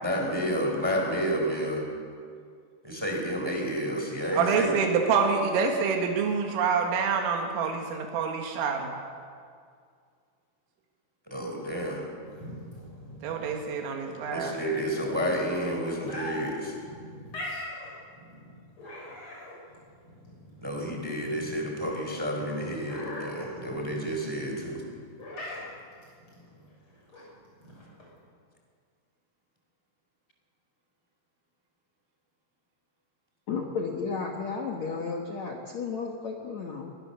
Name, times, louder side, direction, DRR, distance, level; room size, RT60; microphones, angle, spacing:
voice 1, 0.0-1.9 2.8-4.8 11.3-12.0 14.3-16.7 20.6-24.8, equal, 5° right, 1 dB, 3.4 m, -30 dB
voice 2, 4.3-8.9 13.2-14.5, right 5 dB, 90° right, 2 dB, 4.5 m, -26 dB
sound 1, 12.3-28.2, left 1 dB, 25° left, 6.9 m, -42 dB
voice 3, 33.5-36.9, left 5 dB, 70° left, 1 dB, 1.6 m, -33 dB
23.0 x 21.5 x 7.0 m, 2.2 s
omnidirectional pair, 5.7 m